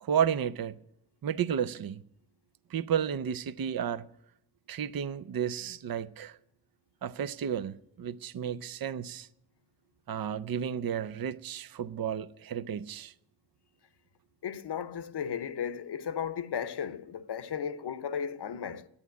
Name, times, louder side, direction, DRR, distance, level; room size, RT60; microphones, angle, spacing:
voice 1, 0.0-0.8 1.2-2.0 2.7-4.0 4.7-6.4 7.0-9.3 10.1-13.1, right 8 dB, 50° right, 0.6 m, -32 dB
voice 2, 14.4-18.9, left 7 dB, 60° left, 0.8 m, -35 dB
10.5 x 8.4 x 9.2 m
cardioid pair, 45°, 46 cm